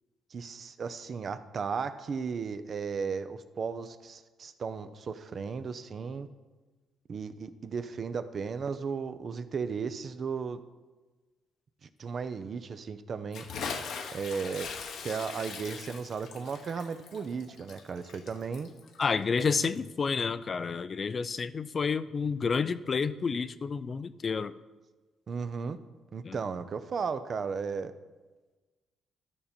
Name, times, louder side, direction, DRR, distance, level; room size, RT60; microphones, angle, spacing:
voice 1, 0.3-6.3 7.1-10.6 11.8-13.5 14.1-14.7 15.0-18.7 25.3-25.8 26.1-27.9, right 5 dB, 50° right, 11 dB, 0.6 m, -35 dB
Bathtub (filling or washing) / Splash splatter, 13.3-19.9, left 5 dB, 70° left, 0.9 m, -41 dB
voice 2, 19.0-24.5 26.2-26.4, left 5 dB, 40° left, 14 dB, 0.4 m, -30 dB
13.0 x 5.4 x 4.3 m, 1.3 s
cardioid pair, 90°, 0 cm